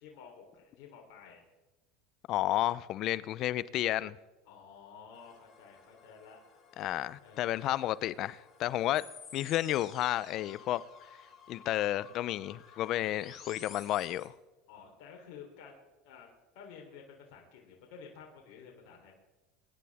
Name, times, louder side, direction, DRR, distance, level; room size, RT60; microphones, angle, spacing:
voice 1, 0.0-1.4 4.5-6.4 7.2-7.8 12.8-13.6 14.7-15.8 16.0-16.3 16.5-19.1, left 6 dB, 70° left, 3.5 m, -52 dB
voice 2, 2.3-4.2 6.8-9.0 9.3-10.8 11.5-14.3, left 14 dB, 55° left, 0.6 m, -31 dB
sound 1, 5.1-14.3, left 6 dB, 35° left, 4.7 m, -54 dB
25.5 x 11.0 x 3.6 m
supercardioid pair, 105°, 0 cm